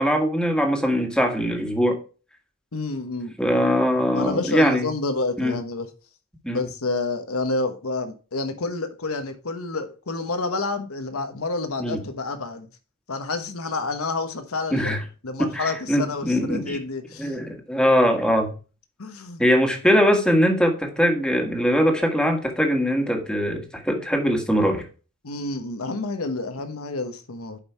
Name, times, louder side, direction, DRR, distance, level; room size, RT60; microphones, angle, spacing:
voice 1, 0.0-2.0 3.4-4.9 5.4-5.5 6.4-6.6 11.8-12.0 14.7-15.0 15.4-16.8 17.2-18.5 19.4-24.8, equal, 5° left, 1.6 m, -21 dB
voice 2, 2.7-3.3 4.1-5.9 6.5-12.7 13.1-15.0 15.2-17.4 19.0-19.4 25.2-27.6, left 3 dB, 85° left, 1.2 m, -29 dB
8.5 x 5.4 x 4.6 m
head